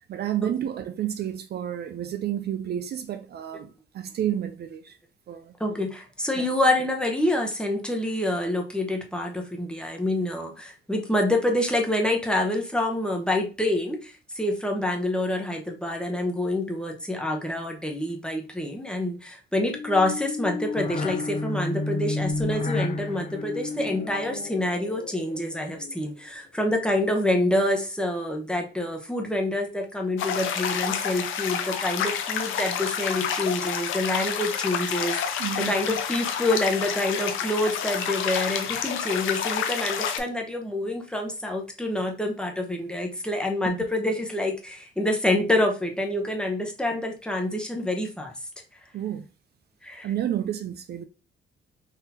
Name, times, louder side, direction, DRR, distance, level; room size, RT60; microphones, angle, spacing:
voice 1, 0.1-5.0 5.3-5.5 6.4-6.5 35.4-35.8 43.6-43.7 48.9-49.3 50.0-51.1, right 10 dB, 55° right, 0.4 m, -30 dB
voice 2, 5.6-48.3 49.8-50.1, left 1 dB, 5° left, 0.9 m, -27 dB
sound 1, 19.7-26.1, left 3 dB, 40° left, 0.5 m, -31 dB
sound 2, 30.2-40.2, left 8 dB, 85° left, 0.6 m, -29 dB
4.0 x 2.7 x 2.8 m
cardioid pair, 90°, 20 cm